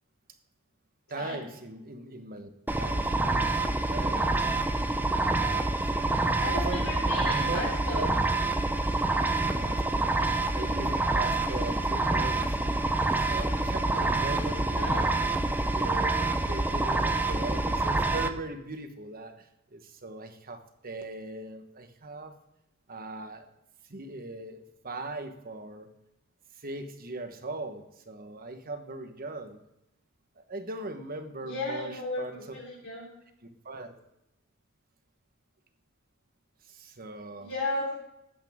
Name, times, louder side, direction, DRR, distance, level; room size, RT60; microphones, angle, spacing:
voice 1, 1.1-4.4 5.2-6.3 6.6-6.9 7.2-8.1 9.6-10.2 10.5-12.6 13.2-15.1 15.7-22.3 22.9-23.5 23.9-25.9 26.5-29.6 30.4-32.4 33.4-34.0 36.7-37.5, right 2 dB, 45° right, 7 dB, 1.2 m, -40 dB
sound 1, 2.7-18.3, right 2 dB, 10° right, 0.6 m, -27 dB
voice 2, 6.4-8.1 14.8-15.0 31.4-33.1 37.4-37.9, left 2 dB, 70° left, -8 dB, 3.6 m, -34 dB
12.0 x 8.7 x 3.6 m, 0.87 s
head